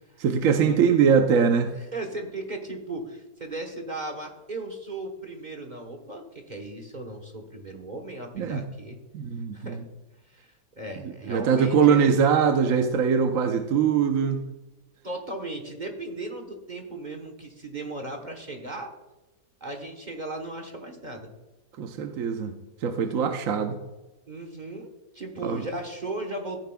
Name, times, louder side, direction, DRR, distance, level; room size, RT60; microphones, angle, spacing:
voice 1, 0.2-1.7 8.4-8.6 9.1-9.8 11.0-14.5 21.8-22.5 22.8-23.8 25.4-25.6, right 6 dB, 60° right, 6 dB, 0.9 m, -22 dB
voice 2, 1.8-9.0 9.5-9.8 10.3-12.1 15.0-18.9 19.6-21.3 24.3-26.6, right 2 dB, 35° right, 3 dB, 0.9 m, -36 dB
15.0 x 9.2 x 2.2 m, 1.1 s
omnidirectional pair, 1.9 m